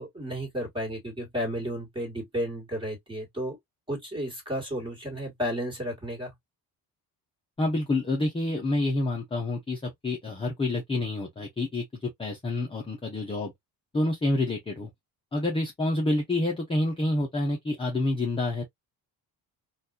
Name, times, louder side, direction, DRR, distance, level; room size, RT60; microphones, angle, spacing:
voice 1, 0.0-3.6 3.9-6.3, equal, 15° right, 1.6 m, -33 dB
voice 2, 7.6-13.5 13.9-14.9 15.3-18.6, left 2 dB, 15° left, 0.6 m, -28 dB
4.0 x 2.4 x 2.4 m
cardioid pair, 170°, 38 cm